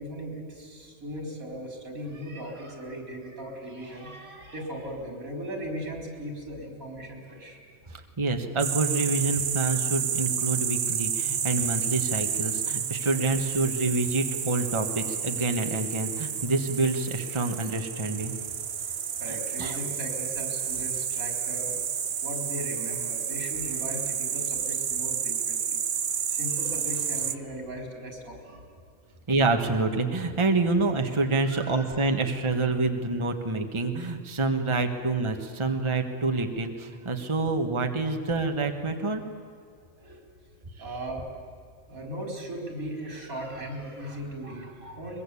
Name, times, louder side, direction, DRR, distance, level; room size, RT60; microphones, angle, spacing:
voice 1, 0.0-7.6 11.6-11.7 13.0-13.2 18.9-21.8 22.2-28.7 31.4-31.8 34.5-34.7 38.1-38.2 40.0-40.3 40.8-41.3 41.9-45.2, equal, 85° right, 3 dB, 4.9 m, -38 dB
voice 2, 8.2-18.3 19.6-19.8 29.3-39.2, right 3 dB, 20° right, 5 dB, 1.5 m, -27 dB
sound 1, 8.6-27.4, right 8 dB, 55° right, 1.0 m, -30 dB
23.0 x 22.5 x 8.4 m, 2.3 s
omnidirectional pair, 1.4 m